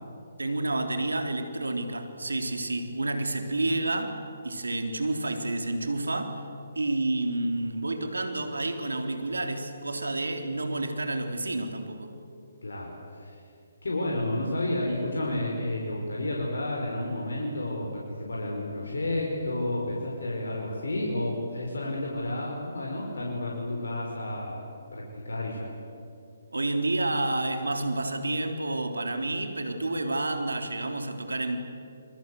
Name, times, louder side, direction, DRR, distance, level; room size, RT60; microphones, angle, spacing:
voice 1, 0.4-4.2 4.4-6.4 6.7-12.1 26.5-31.6, right 2 dB, 85° right, 6 dB, 3.4 m, -29 dB
voice 2, 12.6-13.4 13.8-24.6 24.9-25.7, left 1 dB, 75° left, -2 dB, 5.4 m, -31 dB
30.0 x 22.5 x 7.9 m, 2.5 s
figure-of-eight pair, 140°, 0 cm